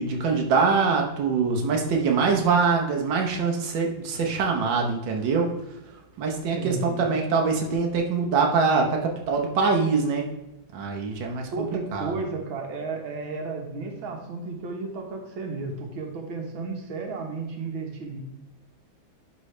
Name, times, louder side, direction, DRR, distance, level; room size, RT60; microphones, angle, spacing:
voice 1, 0.0-5.5 6.2-10.3 10.7-11.6 11.9-12.1, right 4 dB, 70° right, 1 dB, 1.6 m, -24 dB
voice 2, 6.6-7.1 11.5-18.2, right 3 dB, 90° right, 2 dB, 2.0 m, -33 dB
11.0 x 4.1 x 3.2 m, 0.92 s
omnidirectional pair, 2.1 m